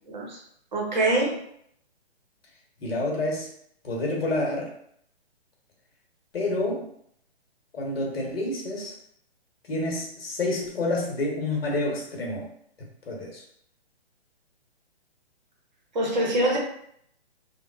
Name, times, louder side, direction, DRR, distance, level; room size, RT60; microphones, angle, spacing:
voice 1, 0.1-0.4 0.7-1.4 15.9-16.6, right 1 dB, 45° right, -1 dB, 0.7 m, -24 dB
voice 2, 2.8-3.5 3.8-4.7 6.3-6.9 7.7-8.9 9.7-12.5 13.1-13.4, left 2 dB, 65° left, -2 dB, 1.0 m, -28 dB
3.0 x 2.1 x 2.3 m, 0.68 s
hypercardioid pair, 170°, 33 cm